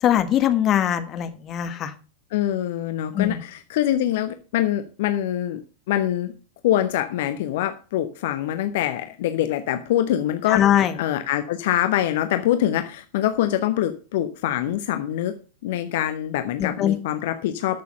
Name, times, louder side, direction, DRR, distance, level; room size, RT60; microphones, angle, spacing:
voice 1, 0.0-1.9 3.1-3.4 10.5-10.9 16.6-17.0, left 10 dB, 30° left, 10 dB, 1.5 m, -21 dB
voice 2, 2.3-5.6 5.9-6.3 6.6-10.6 10.9-15.3 15.6-17.8, left 12 dB, 55° left, 9 dB, 1.0 m, -24 dB
13.0 x 6.9 x 5.3 m, 0.35 s
figure-of-eight pair, 90°, 0 cm